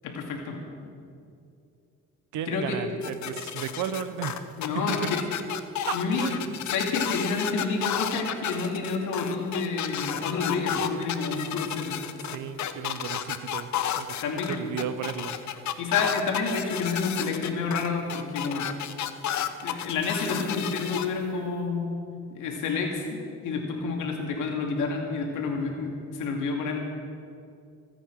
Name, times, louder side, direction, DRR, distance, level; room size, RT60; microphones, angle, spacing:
voice 1, 0.0-0.6 2.5-2.8 4.6-5.2 5.9-12.0 14.2-14.5 15.8-18.7 19.4-22.0 22.3-23.0 23.4-26.8, left 4 dB, 90° left, 1 dB, 2.5 m, -29 dB
voice 2, 2.3-5.1 6.1-6.5 12.2-13.7 14.0-14.2 14.5-15.4, right 8 dB, 85° right, 11 dB, 1.0 m, -34 dB
sound 1, 3.0-21.1, left 10 dB, 70° left, 0.8 m, -32 dB
24.5 x 9.0 x 4.8 m, 2.5 s
cardioid pair, 90°, 30 cm